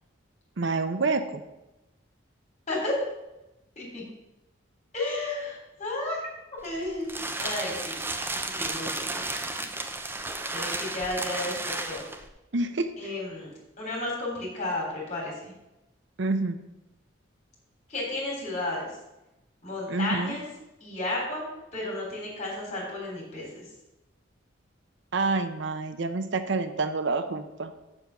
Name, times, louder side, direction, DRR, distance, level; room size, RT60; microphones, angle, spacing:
voice 1, 0.6-1.4 12.5-12.9 16.2-16.6 19.9-20.4 25.1-27.7, right 3 dB, 65° right, 10 dB, 0.6 m, -27 dB
voice 2, 2.7-3.0 3.8-4.0 4.9-6.2 6.6-7.1 7.4-8.0 8.4-9.7 10.5-12.0 13.0-13.5 13.8-15.5 17.9-18.9 19.6-20.4 20.8-21.5 21.7-23.7, left 2 dB, 35° left, -2 dB, 3.7 m, -33 dB
sound 1, 6.6-12.3, right 2 dB, 10° right, 0.6 m, -33 dB
7.1 x 6.7 x 5.9 m, 0.96 s
head